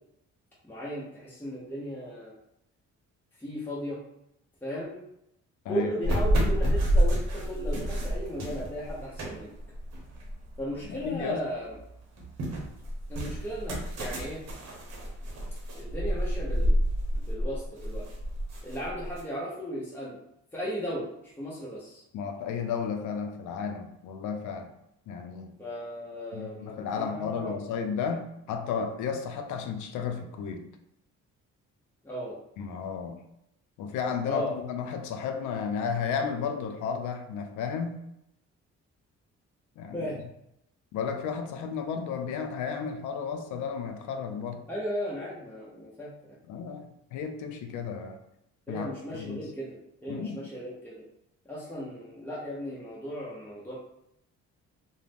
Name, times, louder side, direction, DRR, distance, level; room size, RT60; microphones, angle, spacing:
voice 1, 0.6-2.3 3.4-4.0 4.6-5.1 5.7-9.5 10.6-11.8 13.1-14.4 15.8-16.8 17.1-18.1 18.6-20.2 20.5-22.0 25.6-27.6 32.0-32.4 34.3-34.5 39.9-40.2 44.7-46.1 48.7-49.8 50.0-51.0 51.4-53.7, equal, 5° left, -7 dB, 0.7 m, -36 dB
sound 1, 6.0-11.2 11.6-19.2, equal, 60° right, 0.8 m, -29 dB
voice 2, 10.9-11.4 22.1-24.7 25.1-25.5 26.3-30.6 32.6-33.2 33.8-38.0 39.8-40.1 40.9-44.6 46.5-48.2 48.7-49.4 50.1-50.4, left 6 dB, 80° left, 6 dB, 0.5 m, -33 dB
2.4 x 2.1 x 3.4 m, 0.80 s
cardioid pair, 90°, 30 cm